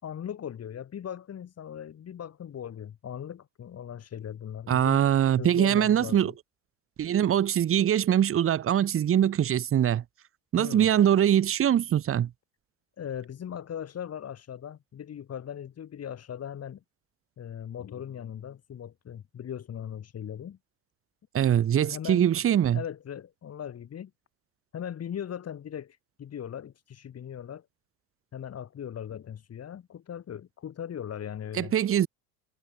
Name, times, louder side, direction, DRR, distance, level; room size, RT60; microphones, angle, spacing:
voice 1, 0.0-5.0 5.4-6.3 10.6-10.9 13.0-16.8 17.4-20.6 21.8-22.3 22.7-24.1 24.7-27.7 28.3-31.7, left 9 dB, 30° left, 7.1 m, -39 dB
voice 2, 4.7-6.3 7.0-10.0 10.5-12.3 21.3-22.8 31.5-32.1, right 10 dB, 30° right, 1.9 m, -23 dB
figure-of-eight pair, 70°, 46 cm